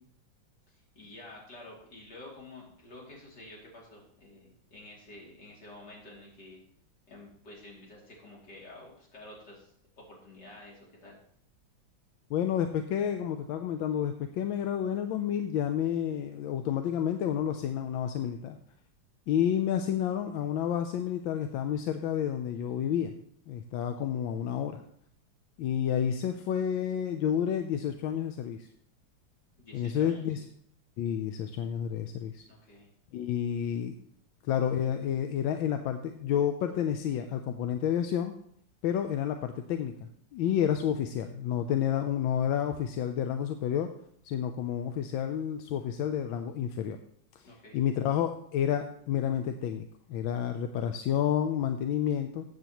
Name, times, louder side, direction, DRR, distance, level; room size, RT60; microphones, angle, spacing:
voice 1, 0.7-6.6 7.1-9.7 10.0-11.2 29.6-30.4 32.5-32.9 47.4-47.8, left 2 dB, 55° left, -3 dB, 3.5 m, -50 dB
voice 2, 12.3-18.6 19.3-23.1 23.5-24.8 25.6-28.7 29.7-30.4 31.0-32.4 33.1-34.0 34.5-38.3 38.8-39.9 40.3-43.9 44.2-47.0 47.7-52.4, left 9 dB, 85° left, 7 dB, 1.4 m, -30 dB
14.0 x 8.0 x 3.0 m, 0.66 s
omnidirectional pair, 2.2 m